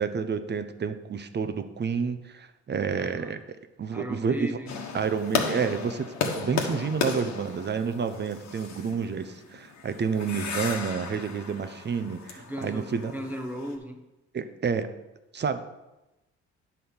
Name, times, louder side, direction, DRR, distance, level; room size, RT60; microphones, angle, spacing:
voice 1, 0.0-3.4 3.8-4.5 4.9-13.1 14.3-14.9 15.3-15.6, right 6 dB, 35° right, 10 dB, 0.7 m, -29 dB
voice 2, 3.0-3.4 3.9-4.9 12.4-14.1, equal, 5° right, 3 dB, 1.0 m, -37 dB
sound 1, 4.7-13.8, left 5 dB, 65° left, 1.4 m, -34 dB
9.6 x 4.1 x 7.0 m, 1.0 s
cardioid pair, 90°, 30 cm